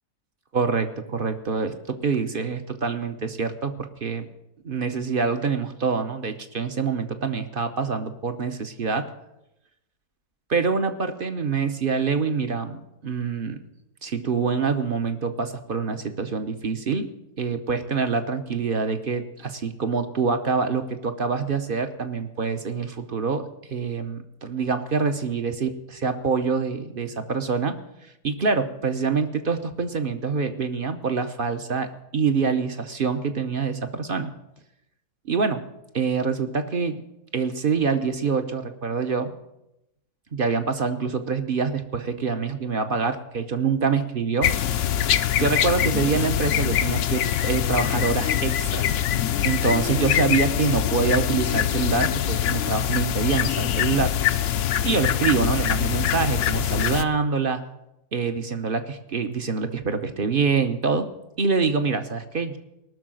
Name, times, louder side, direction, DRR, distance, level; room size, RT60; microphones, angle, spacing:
voice 1, 0.5-4.3 4.6-9.1 10.5-13.6 14.0-17.1 17.4-27.8 28.2-34.3 35.3-35.6 35.9-37.0 37.3-39.3 40.3-44.5 45.4-49.0 49.4-54.1 54.8-57.6 58.1-61.1 61.4-62.6, right 5 dB, 45° right, 8 dB, 0.8 m, -25 dB
sound 1, 44.4-57.0, left 10 dB, 65° left, 0.8 m, -23 dB
18.5 x 6.4 x 7.6 m, 0.88 s
omnidirectional pair, 1.7 m